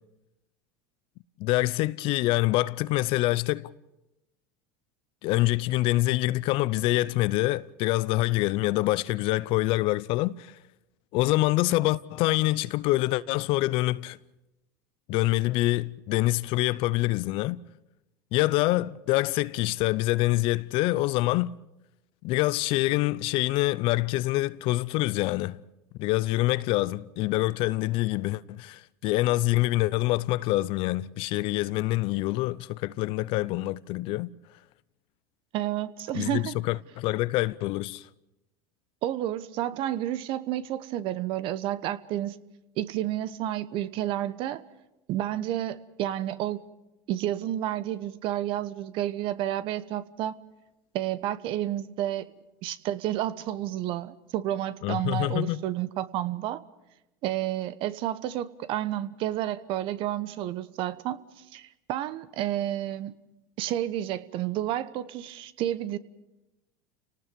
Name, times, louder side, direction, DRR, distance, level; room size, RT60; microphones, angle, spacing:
voice 1, 1.4-3.7 5.2-10.5 11.1-14.2 15.1-17.6 18.3-21.6 22.2-25.6 26.0-34.3 36.1-38.1 54.8-55.6, left 18 dB, 60° left, 0.7 m, -26 dB
voice 2, 35.5-36.6 39.0-42.4 42.8-44.6 45.1-46.6 47.1-50.3 50.9-52.3 52.6-56.6 57.2-61.2 61.5-63.1 63.6-66.0, right 13 dB, 55° right, 1.1 m, -30 dB
30.0 x 19.0 x 5.3 m
hypercardioid pair, 95°, 10 cm